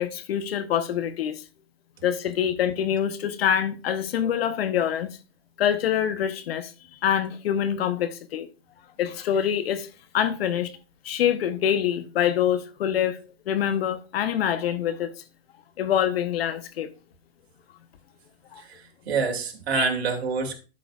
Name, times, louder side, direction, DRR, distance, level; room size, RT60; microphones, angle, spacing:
voice 1, 0.0-1.4 2.0-5.1 5.6-6.7 7.0-8.5 9.0-9.9 10.1-10.7 11.0-13.2 13.5-15.1 15.8-16.9 18.5-18.6 19.7-19.9, left 9 dB, 65° left, 1.0 m, -25 dB
voice 2, 18.6-20.5, right 5 dB, 70° right, 2.4 m, -27 dB
11.5 x 6.3 x 2.4 m
hypercardioid pair, 130°, 33 cm